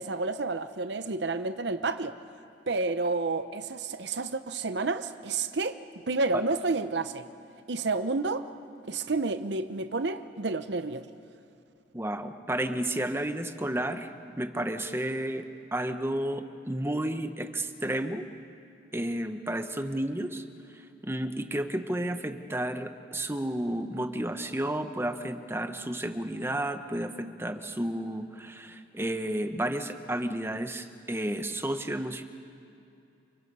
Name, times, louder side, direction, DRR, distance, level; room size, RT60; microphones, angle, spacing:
voice 1, 0.0-2.2 2.7-5.8 6.1-7.2 7.7-8.5 8.9-11.1, right 3 dB, 65° right, 11 dB, 0.8 m, -30 dB
voice 2, 11.9-18.3 18.9-20.4 20.7-32.2, right 1 dB, 15° right, 8 dB, 1.0 m, -32 dB
29.5 x 25.0 x 5.5 m, 2.7 s
head